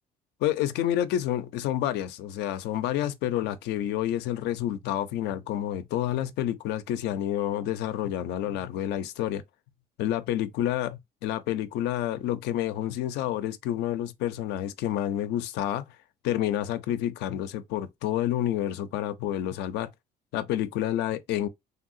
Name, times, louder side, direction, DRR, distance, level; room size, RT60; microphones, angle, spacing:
voice 1, 0.4-9.4 10.0-15.9 16.2-19.9 20.3-21.5, left 12 dB, 85° left, 0.5 m, -29 dB
3.3 x 2.7 x 2.4 m
cardioid pair, 110°, 17 cm